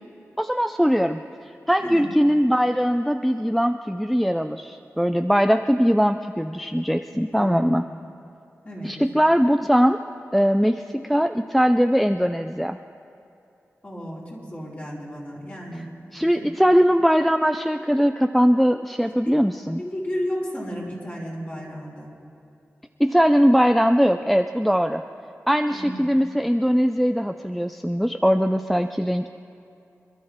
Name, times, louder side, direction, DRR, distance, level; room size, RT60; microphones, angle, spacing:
voice 1, 0.4-1.2 1.7-7.8 8.8-10.0 10.3-12.8 16.1-19.8 23.0-25.0 25.5-29.3, equal, ahead, 7 dB, 0.4 m, -20 dB
voice 2, 7.3-7.7 8.6-8.9 13.8-15.9 16.4-16.5 19.2-19.3 19.8-22.1 25.7-26.0, equal, 30° left, -6 dB, 4.4 m, -33 dB
26.5 x 12.0 x 3.7 m, 2.7 s
cardioid pair, 55°, 5 cm